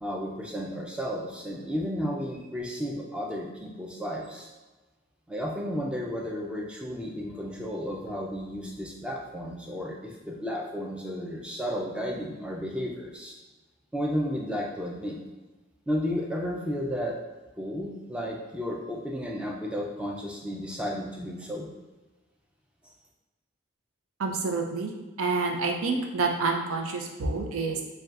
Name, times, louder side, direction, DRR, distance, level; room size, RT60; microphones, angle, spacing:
voice 1, 0.0-4.5 5.3-13.3 13.9-15.2 15.9-17.2 17.6-21.7, equal, 5° right, -1 dB, 0.4 m, -33 dB
voice 2, 24.2-24.9 25.2-27.8, right 4 dB, 90° right, 3 dB, 0.6 m, -28 dB
6.7 x 2.3 x 2.4 m, 1.2 s
head